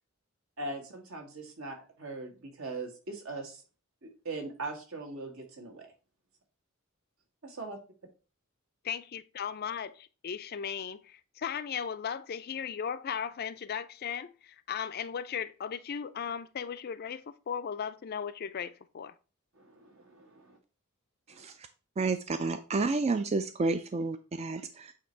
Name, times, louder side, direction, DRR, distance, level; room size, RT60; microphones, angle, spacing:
voice 1, 0.6-3.6 4.0-5.9 7.4-7.8 19.6-20.6 21.3-21.4, right 2 dB, 75° right, 1.9 m, -41 dB
voice 2, 8.8-19.1, left 7 dB, 45° left, 0.4 m, -37 dB
voice 3, 22.0-24.9, right 3 dB, 30° right, 0.3 m, -30 dB
8.6 x 2.9 x 4.5 m
head